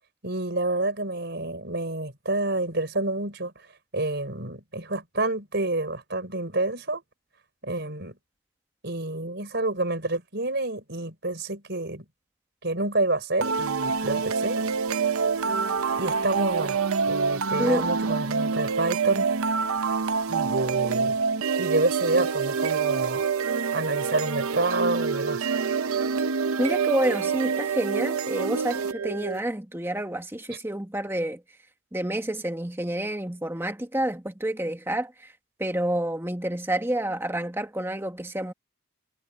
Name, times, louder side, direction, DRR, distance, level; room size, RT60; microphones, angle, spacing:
voice 1, 0.2-3.5 3.9-7.0 7.6-8.2 8.8-12.0 12.6-14.6 16.0-16.8 17.1-19.3 20.3-21.2 21.6-23.3 23.7-25.5, right 2 dB, 50° right, 4.9 m, -28 dB
sound 1, 13.4-29.4, right 5 dB, 85° right, 0.7 m, -26 dB
voice 2, 26.6-31.4 31.9-35.3 35.6-38.5, right 1 dB, 10° right, 1.5 m, -29 dB
head